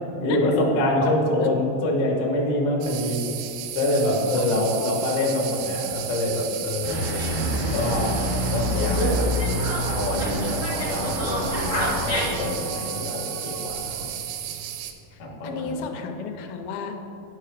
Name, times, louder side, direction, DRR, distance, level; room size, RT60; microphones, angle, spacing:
voice 1, 0.2-3.2 3.7-7.0 7.7-8.2 8.5-9.3 9.8-14.1 15.2-15.9, left 1 dB, 70° left, -2 dB, 1.3 m, -25 dB
sound 1, 2.8-14.9, right 10 dB, 85° right, 2.3 m, -33 dB
voice 2, 4.4-4.9 8.9-9.2 11.0-11.1 15.1-17.0, left 6 dB, 85° left, 5 dB, 2.4 m, -33 dB
Dog, 6.8-12.5, equal, 55° left, 0.7 m, -26 dB
sound 2, 8.4-9.2 10.9-14.0, right 1 dB, 55° right, 0.7 m, -39 dB
10.5 x 5.6 x 3.3 m, 2.9 s
omnidirectional pair, 4.2 m